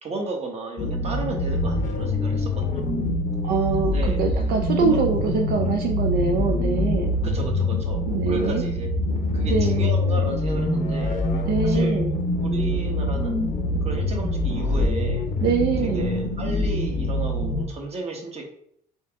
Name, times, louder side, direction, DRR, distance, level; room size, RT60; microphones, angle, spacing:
voice 1, 0.0-2.8 3.8-4.2 4.9-5.0 7.2-8.9 9.3-11.2 11.6-12.0 12.4-13.4 13.8-15.3 15.8-18.5, right 3 dB, 40° right, 1 dB, 1.1 m, -33 dB
sound 1, 0.8-17.7, left 2 dB, 50° left, 0.7 m, -24 dB
voice 2, 3.4-7.1 8.1-8.6 9.4-9.9 11.5-12.1 15.4-16.1, right 5 dB, 65° right, 2 dB, 0.5 m, -24 dB
4.3 x 2.9 x 3.5 m, 0.69 s
cardioid pair, 110°, 17 cm